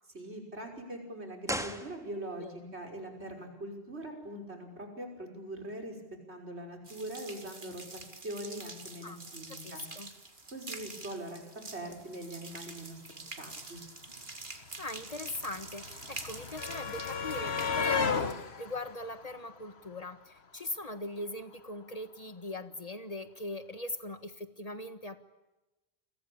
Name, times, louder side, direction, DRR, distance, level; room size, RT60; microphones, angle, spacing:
voice 1, 0.1-6.0 6.3-9.8 10.5-13.8, right 1 dB, 85° right, 2 dB, 6.0 m, -42 dB
sound 1, 1.4-2.5 2.8-2.9, equal, 5° right, 2.0 m, -37 dB
voice 2, 2.4-2.7 9.0-9.2 9.5-10.1 14.5-25.2, left 2 dB, 35° left, 10 dB, 1.6 m, -41 dB
sound 2, 6.8-17.7, right 3 dB, 50° right, 2.4 m, -46 dB
sound 3, 13.8-13.9 14.0-20.2 21.4-21.5 21.8-21.9, left 5 dB, 70° left, 1.6 m, -35 dB
29.5 x 23.0 x 8.7 m, 1.0 s
omnidirectional pair, 1.1 m